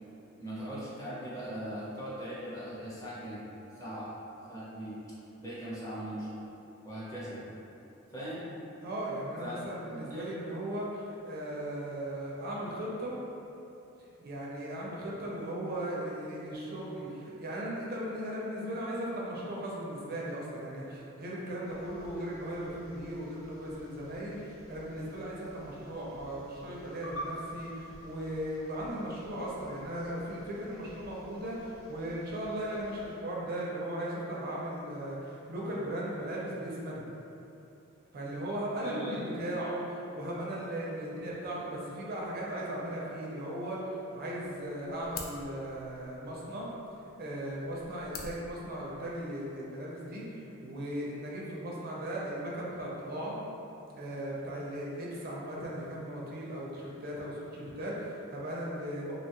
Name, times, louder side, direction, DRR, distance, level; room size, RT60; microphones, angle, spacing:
voice 1, 0.4-3.5 3.7-4.1 4.5-5.0 5.4-6.4 6.8-7.5 8.1-8.5 9.4-10.3 38.8-39.3, right 1 dB, 15° left, -9 dB, 0.6 m, -40 dB
voice 2, 8.8-13.1 14.2-37.0 38.1-46.7 47.2-53.3 54.0-59.1, right 1 dB, 45° right, -4 dB, 0.4 m, -37 dB
sound 1, 21.6-33.1, equal, 90° left, 0.7 m, -50 dB
sound 2, 44.4-49.4, left 4 dB, 45° left, 0.3 m, -49 dB
2.8 x 2.3 x 2.8 m, 2.8 s
head